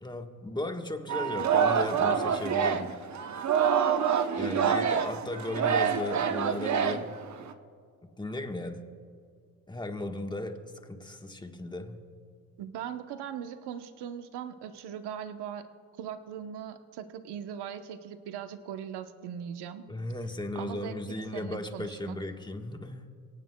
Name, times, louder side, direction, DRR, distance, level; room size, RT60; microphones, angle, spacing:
voice 1, 0.0-2.9 4.3-7.2 8.0-8.9 9.7-12.0 19.9-23.1, left 1 dB, 10° left, 1.3 m, -36 dB
Singing, 1.1-7.5, right 7 dB, 45° right, 0.9 m, -27 dB
voice 2, 4.4-4.8 12.6-15.7 16.0-19.9 20.5-22.2, right 9 dB, 75° right, 1.0 m, -40 dB
23.5 x 17.5 x 2.3 m
supercardioid pair, 80°, 40 cm